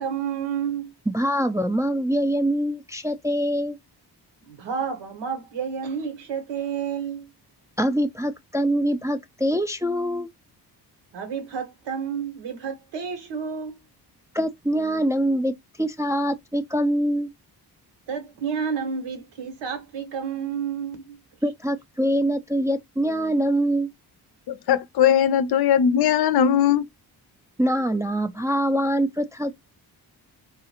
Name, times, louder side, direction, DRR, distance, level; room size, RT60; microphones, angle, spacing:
voice 1, 0.0-0.9 4.4-7.3 11.1-13.8 18.1-21.2, right 7 dB, 90° right, 1.1 m, -30 dB
voice 2, 1.1-3.8 7.8-10.3 14.3-17.3 21.4-23.9 27.6-29.5, equal, 10° right, 0.3 m, -24 dB
voice 3, 24.5-26.8, left 9 dB, 60° left, 0.5 m, -19 dB
3.8 x 2.4 x 2.8 m
cardioid pair, 75°, 42 cm